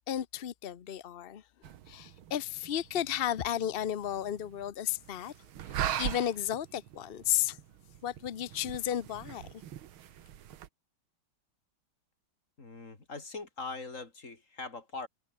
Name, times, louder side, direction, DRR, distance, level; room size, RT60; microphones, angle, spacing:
voice 1, 0.1-1.4 1.9-5.3 5.7-7.6 8.0-9.5, left 11 dB, 75° left, 0.5 m, -33 dB
sound 1, 1.6-10.7, right 11 dB, 90° right, 2.0 m, -41 dB
voice 2, 12.6-15.1, left 3 dB, 35° left, 3.7 m, -41 dB
omnidirectional pair, 2.2 m